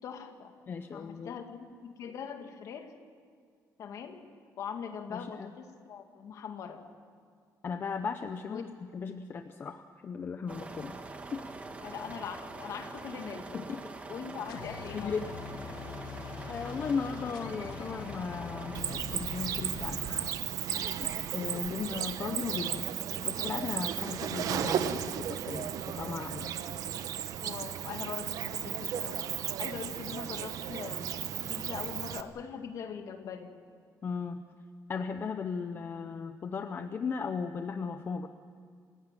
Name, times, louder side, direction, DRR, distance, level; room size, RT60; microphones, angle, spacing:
voice 1, 0.0-0.6 0.9-2.9 3.8-4.3 4.6-6.9 8.5-8.7 11.8-13.6 14.1-15.3 27.4-33.5, left 7 dB, 55° left, 5 dB, 2.1 m, -42 dB
voice 2, 0.7-1.4 5.1-5.5 7.6-10.9 11.3-11.4 13.5-13.8 14.9-15.3 16.5-20.3 20.7-22.9 23.2-26.5 34.0-34.4 34.9-38.3, left 5 dB, 30° left, 8 dB, 0.7 m, -36 dB
sound 1, 10.5-18.8, right 3 dB, 20° right, 1.4 m, -44 dB
sound 2, 14.5-20.3, left 7 dB, 75° left, 1.3 m, -43 dB
Cricket, 18.7-32.2, right 9 dB, 60° right, 1.0 m, -34 dB
28.0 x 16.0 x 9.1 m, 2.1 s
cardioid pair, 175°, 7 cm